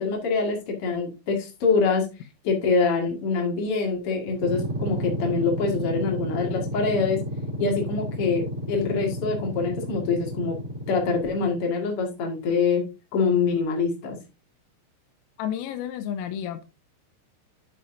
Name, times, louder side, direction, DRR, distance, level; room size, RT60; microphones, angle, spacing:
voice 1, 0.0-2.0 2.4-7.2 7.6-10.6 10.9-12.8 13.1-14.2, left 4 dB, 60° left, 1.5 m, -25 dB
sound 1, 4.3-11.6, equal, 20° right, 2.4 m, -32 dB
voice 2, 15.4-16.7, left 9 dB, 90° left, 3.4 m, -31 dB
9.3 x 8.5 x 2.7 m
omnidirectional pair, 6.0 m